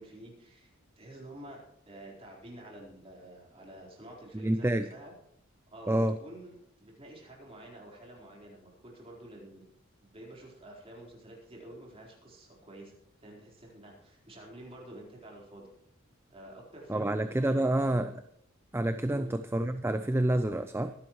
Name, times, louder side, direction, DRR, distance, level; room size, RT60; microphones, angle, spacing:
voice 1, 0.0-5.1 5.7-9.6 10.0-12.9 13.2-15.7 16.3-18.0 19.1-19.3, right 1 dB, 30° right, -2 dB, 4.2 m, -49 dB
voice 2, 4.3-4.9 5.9-6.2 16.9-18.2 18.7-20.9, right 1 dB, 10° right, 9 dB, 0.4 m, -28 dB
24.0 x 10.5 x 3.1 m, 0.72 s
head